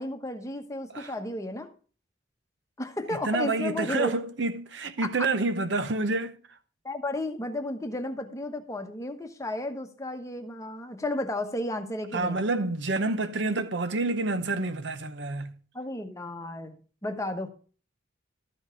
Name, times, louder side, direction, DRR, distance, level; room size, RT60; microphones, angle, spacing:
voice 1, 0.0-1.7 2.8-4.1 5.0-5.1 6.8-12.4 15.7-17.5, left 1 dB, 15° left, 1.0 m, -33 dB
voice 2, 3.2-6.4 12.1-15.6, right 2 dB, 65° right, 0.8 m, -28 dB
13.0 x 5.3 x 4.9 m
head